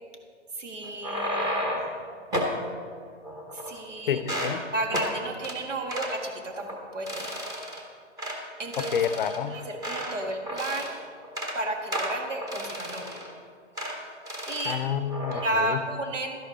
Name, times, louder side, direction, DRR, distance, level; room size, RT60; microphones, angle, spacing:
voice 1, 0.5-1.7 3.5-4.2 4.7-7.3 8.6-8.9 9.5-11.0 11.5-13.3 14.5-14.8 15.4-16.4, right 1 dB, 85° right, 3 dB, 1.9 m, -32 dB
sound 1, 0.8-2.0 2.3-2.6 3.2-3.9 4.2-4.6 4.9-5.1 5.4-5.6 5.9-6.1 6.6-6.8 7.1-7.8 8.2-8.4 8.7-10.2 10.5-11.0 11.2-11.6 11.9-13.3 13.8-14.0 14.3-14.8 15.1-15.5, equal, 10° right, 0.8 m, -32 dB
voice 2, 4.1-4.6 8.8-9.6 14.6-15.8, left 8 dB, 45° left, 12 dB, 0.5 m, -29 dB
12.0 x 11.0 x 3.8 m, 2.1 s
hypercardioid pair, 145°, 36 cm